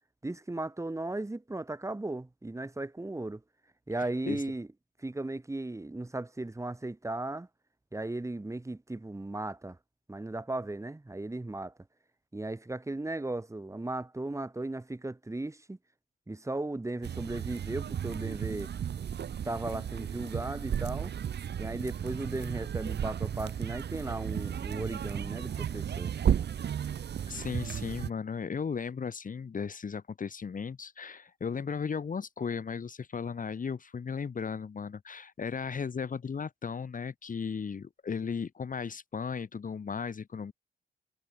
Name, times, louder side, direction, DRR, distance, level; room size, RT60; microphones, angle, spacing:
voice 1, 0.2-3.4 3.9-4.7 5.0-7.5 7.9-9.8 10.1-11.7 12.3-15.8 16.3-18.7 19.4-21.1 21.6-26.1, right 2 dB, 15° right, 7.5 m, -36 dB
voice 2, 4.0-4.4 27.3-40.5, left 6 dB, 45° left, 2.6 m, -36 dB
sound 1, 17.0-28.1, right 9 dB, 60° right, 1.1 m, -34 dB
wide cardioid pair, 120°, 19 cm